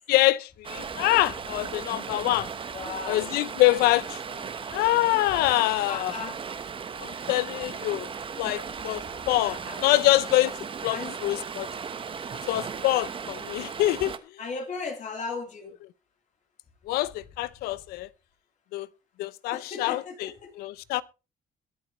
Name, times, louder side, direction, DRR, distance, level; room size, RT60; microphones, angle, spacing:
voice 1, 0.1-2.5 3.1-4.2 4.7-6.1 7.0-8.1 8.4-10.5 10.8-11.7 12.5-14.2 16.9-18.1 18.7-18.9 19.2-20.3 20.6-21.0, left 17 dB, 90° left, 0.6 m, -25 dB
Stream, 0.6-14.2, right 6 dB, 35° right, 1.2 m, -36 dB
voice 2, 2.7-3.3 5.9-6.4 9.4-9.8 10.9-11.4 14.4-15.7 19.5-20.5, left 4 dB, 50° left, 3.6 m, -36 dB
22.0 x 7.9 x 3.1 m
cardioid pair, 105°, 16 cm